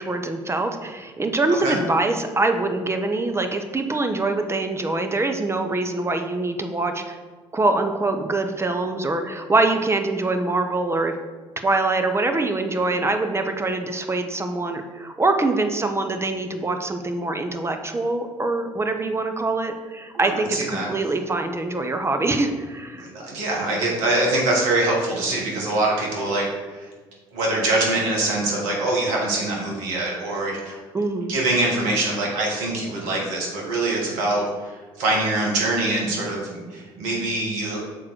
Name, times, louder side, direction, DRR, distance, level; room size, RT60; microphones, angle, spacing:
voice 1, 0.0-7.2 7.5-11.1 11.6-23.1 30.9-31.3, right 2 dB, 20° right, 6 dB, 0.8 m, -24 dB
voice 2, 20.2-20.9 22.9-26.9 27.3-30.8 31.3-37.8, right 2 dB, 75° right, -2 dB, 1.6 m, -24 dB
6.3 x 3.8 x 4.4 m, 1.4 s
hypercardioid pair, 55°, 13 cm